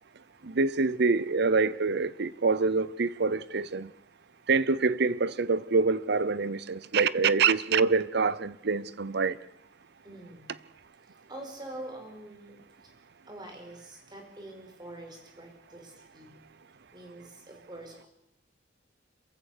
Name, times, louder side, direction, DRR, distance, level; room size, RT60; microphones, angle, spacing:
voice 1, 0.4-3.9 4.5-9.4, right 4 dB, 60° right, 0.7 m, -26 dB
voice 2, 10.0-10.5 11.0-12.9 13.3-16.3 16.9-18.1, right 1 dB, 25° right, 5.0 m, -45 dB
27.0 x 15.5 x 6.7 m
head